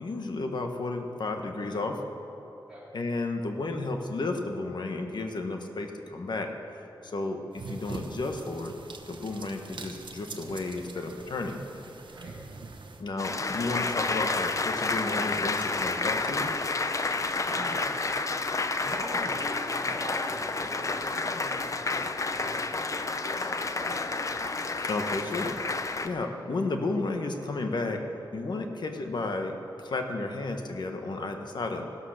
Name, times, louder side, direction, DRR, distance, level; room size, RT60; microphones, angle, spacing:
voice 1, 0.0-2.0 2.9-6.5 7.0-8.7 9.1-11.6 13.0-16.5 24.5-25.6 26.0-28.0 28.3-31.8, left 3 dB, 60° left, 4 dB, 1.4 m, -32 dB
sound 1, 7.5-13.0, right 3 dB, 70° right, 1.1 m, -43 dB
Applause, 13.2-26.1, left 3 dB, 40° left, 0.7 m, -30 dB
voice 2, 17.5-18.1 18.8-24.0, equal, 5° right, -10 dB, 4.4 m, -42 dB
16.0 x 12.0 x 6.5 m, 2.9 s
wide cardioid pair, 125°, 8 cm